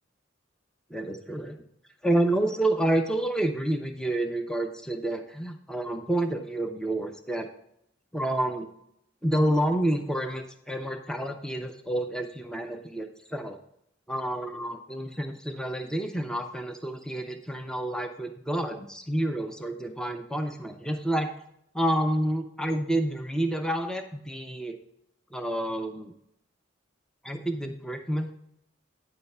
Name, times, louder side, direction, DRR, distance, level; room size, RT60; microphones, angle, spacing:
voice 1, 0.9-1.6 2.0-7.5 8.1-8.7 9.2-13.6 14.1-21.3 21.7-24.8 25.3-26.1 27.2-28.3, right 1 dB, 5° left, 5 dB, 0.5 m, -29 dB
9.6 x 3.4 x 5.4 m, 0.74 s
head